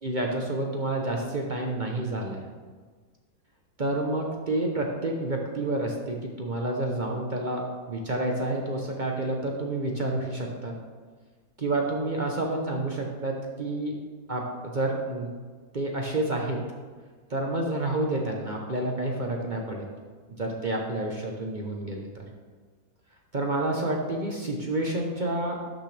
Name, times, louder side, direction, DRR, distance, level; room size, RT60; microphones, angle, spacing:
voice 1, 0.0-2.5 3.8-10.7 11.6-14.0 14.3-15.3 15.7-16.6 17.3-19.9 20.4-22.2 23.3-25.6, right 2 dB, 50° right, 0 dB, 0.5 m, -29 dB
12.0 x 6.5 x 3.3 m, 1.5 s
omnidirectional pair, 2.0 m